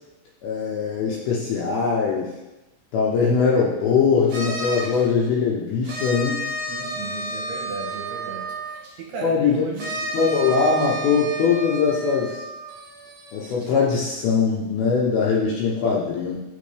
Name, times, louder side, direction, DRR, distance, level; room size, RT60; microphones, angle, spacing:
voice 1, 0.4-2.3 2.9-6.4 9.2-9.7 10.0-12.4 13.3-16.4, left 5 dB, 75° left, -4 dB, 2.4 m, -21 dB
sound 1, 4.3-5.0 5.8-8.9 9.8-13.7, right 2 dB, 60° right, 1.7 m, -31 dB
voice 2, 6.7-8.5 9.0-10.0, right 4 dB, 75° right, -1 dB, 2.7 m, -35 dB
10.5 x 3.7 x 3.3 m, 1.0 s
omnidirectional pair, 5.1 m